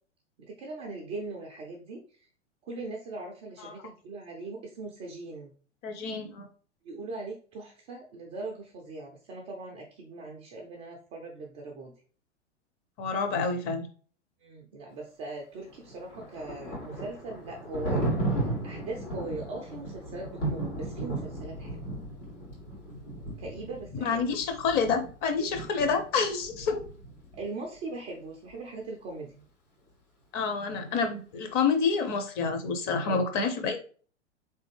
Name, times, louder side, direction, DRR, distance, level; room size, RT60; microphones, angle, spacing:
voice 1, 0.4-2.3 2.6-5.5 6.8-11.9 14.4-22.0 23.4-24.3 27.3-29.4 33.0-33.3, right 3 dB, 15° right, -1 dB, 0.3 m, -40 dB
voice 2, 5.8-6.5 13.0-13.9 24.0-26.8 30.3-33.8, left 5 dB, 25° left, 7 dB, 0.6 m, -28 dB
Thunder, 15.7-27.5, right 2 dB, 85° left, 2.0 m, -35 dB
3.9 x 3.3 x 3.2 m, 0.42 s
figure-of-eight pair, 100°, 36 cm